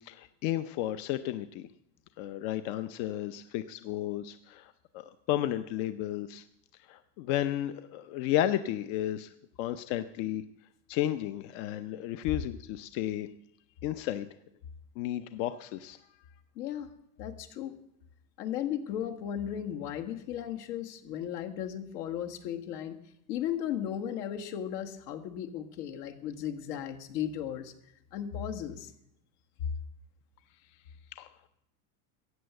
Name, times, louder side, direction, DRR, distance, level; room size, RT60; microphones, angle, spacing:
voice 1, 0.0-1.7 2.2-6.4 6.9-9.3 9.6-10.4 10.9-13.3 13.8-14.3 15.0-16.0 31.1-31.3, left 13 dB, 50° left, 11 dB, 0.7 m, -33 dB
voice 2, 16.5-16.9 17.2-17.8 18.4-23.0 23.3-27.7 28.1-28.9, left 10 dB, 75° left, 5 dB, 1.8 m, -35 dB
14.5 x 8.8 x 8.1 m, 0.78 s
supercardioid pair, 150°, 49 cm